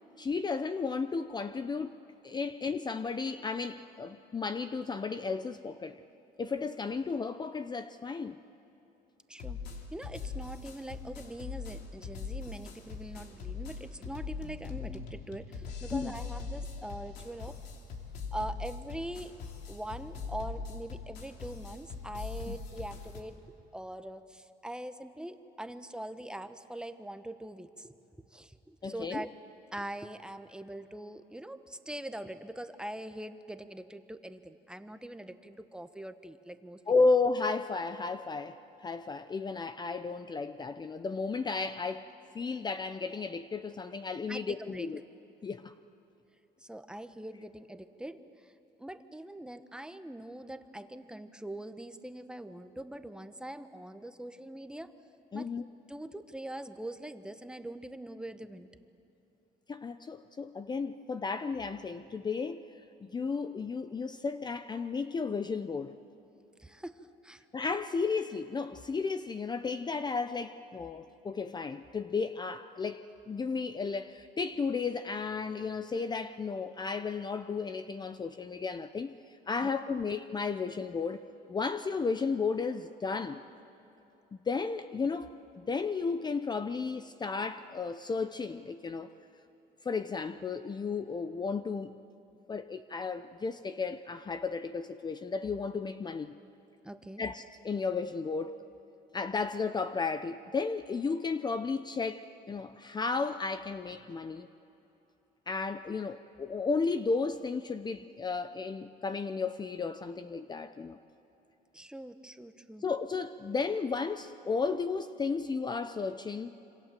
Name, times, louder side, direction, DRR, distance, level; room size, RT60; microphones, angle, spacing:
voice 1, 0.2-2.0 2.2-6.0 6.4-8.4 15.9-16.1 22.5-22.6 28.8-29.2 36.9-38.6 38.8-42.1 42.3-45.0 45.4-45.7 55.3-55.6 59.7-62.6 63.0-65.9 67.5-79.1 79.5-83.4 84.5-89.1 89.8-92.0 92.5-96.4 97.2-98.6 99.1-104.5 105.5-111.0 112.8-116.5, left 4 dB, 25° left, 11 dB, 0.7 m, -33 dB
voice 2, 9.3-17.6 18.3-19.3 19.7-23.3 23.7-27.9 28.3-29.3 29.7-37.1 44.3-44.9 46.6-48.5 48.8-54.9 55.3-55.5 55.9-58.7 66.6-67.4 79.6-79.7 96.8-97.2 111.7-112.8, right 1 dB, 5° right, 10 dB, 1.1 m, -43 dB
sound 1, 9.4-23.2, left 5 dB, 90° left, 3.0 m, -41 dB
26.5 x 26.0 x 7.5 m, 2.9 s
cardioid pair, 110°, 17 cm